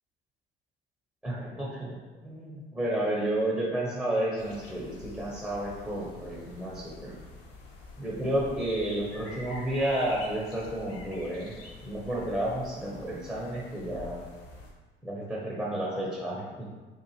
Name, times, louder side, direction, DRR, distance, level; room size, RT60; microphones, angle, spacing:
voice 1, 1.2-1.9 2.2-7.2 8.0-11.6 11.8-14.2 15.0-16.8, right 1 dB, 5° right, -6 dB, 0.6 m, -31 dB
sound 1, 4.4-14.7, left 3 dB, 45° left, 0.6 m, -47 dB
2.8 x 2.4 x 3.0 m, 1.3 s
figure-of-eight pair, 60°, 31 cm